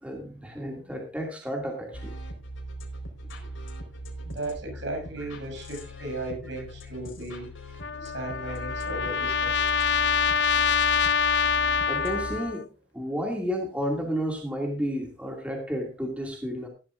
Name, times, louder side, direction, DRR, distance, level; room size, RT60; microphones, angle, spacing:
voice 1, 0.0-2.1 11.9-12.6 12.9-16.7, equal, 5° right, 1 dB, 2.3 m, -31 dB
sound 1, 1.9-12.5, right 1 dB, 90° left, 4.6 m, -40 dB
voice 2, 4.2-7.5 8.0-9.7, right 1 dB, 65° right, 2 dB, 6.9 m, -36 dB
Trumpet, 7.8-12.6, left 6 dB, 60° left, 0.6 m, -25 dB
17.0 x 12.0 x 2.5 m, 0.34 s
head